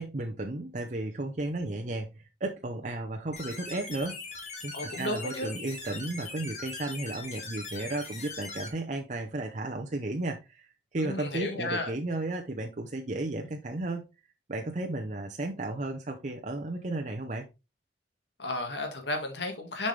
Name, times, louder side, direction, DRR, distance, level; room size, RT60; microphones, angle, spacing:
voice 1, 0.0-4.2 4.6-14.1 14.5-17.5, right 2 dB, 45° right, 0.7 m, -34 dB
sound 1, 3.3-8.7, left 3 dB, 40° left, 2.1 m, -41 dB
voice 2, 4.7-5.5 11.0-11.9 18.4-19.9, left 2 dB, 80° left, 1.8 m, -33 dB
7.0 x 5.4 x 3.3 m
head